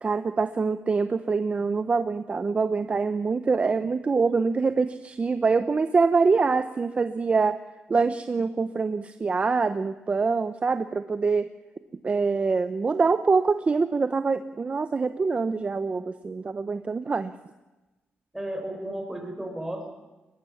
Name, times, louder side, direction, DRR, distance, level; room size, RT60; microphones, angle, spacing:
voice 1, 0.0-7.6 7.9-11.5 12.0-17.3, right 4 dB, 30° right, 11 dB, 0.9 m, -25 dB
voice 2, 18.3-19.9, right 1 dB, 10° right, 2 dB, 6.5 m, -33 dB
23.5 x 20.5 x 7.2 m, 1.1 s
wide cardioid pair, 125°, 4 cm